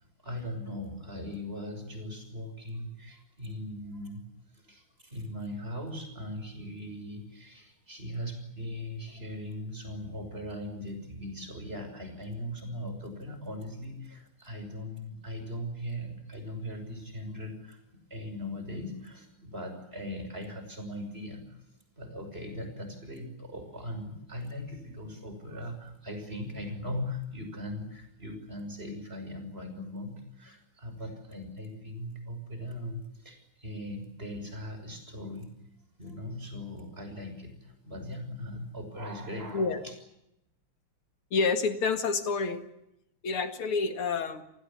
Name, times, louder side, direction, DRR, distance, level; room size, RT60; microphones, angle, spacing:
voice 1, 0.2-4.2 4.5-17.8 18.1-21.6 22.0-35.5 36.0-39.9, left 1 dB, 25° right, 6 dB, 6.4 m, -39 dB
voice 2, 41.3-42.6 43.2-44.4, left 4 dB, 80° left, 8 dB, 2.9 m, -28 dB
29.0 x 19.5 x 8.8 m, 0.83 s
omnidirectional pair, 2.3 m